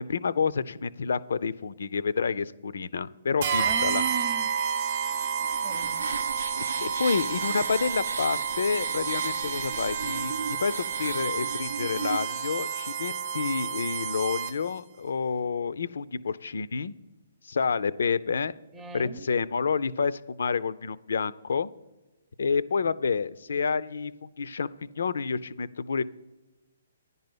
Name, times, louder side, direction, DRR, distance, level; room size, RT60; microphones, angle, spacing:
voice 1, 0.0-4.0 5.0-5.2 6.6-16.9 17.4-18.5 18.9-21.7 22.4-24.7 25.0-26.0, left 5 dB, 75° left, 18 dB, 0.4 m, -29 dB
sound 1, 3.4-14.8, right 7 dB, 50° right, 0.7 m, -30 dB
voice 2, 3.6-4.6 5.6-6.2 18.7-19.3, right 7 dB, 10° right, 5 dB, 0.6 m, -37 dB
sound 2, 4.8-12.4, right 4 dB, 85° right, 0.5 m, -36 dB
10.5 x 5.4 x 7.8 m, 1.1 s
hypercardioid pair, 145°, 0 cm